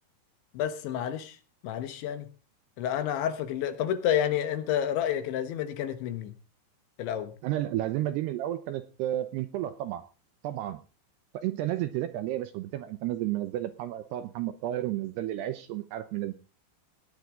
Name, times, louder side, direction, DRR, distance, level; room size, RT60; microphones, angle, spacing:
voice 1, 0.5-1.4 1.6-2.3 2.8-6.3 7.0-7.3, left 10 dB, 75° left, 10 dB, 3.5 m, -29 dB
voice 2, 7.4-10.0 10.4-10.8 11.3-16.3, right 13 dB, 80° right, 11 dB, 2.5 m, -32 dB
18.0 x 10.5 x 3.8 m, 0.34 s
omnidirectional pair, 5.5 m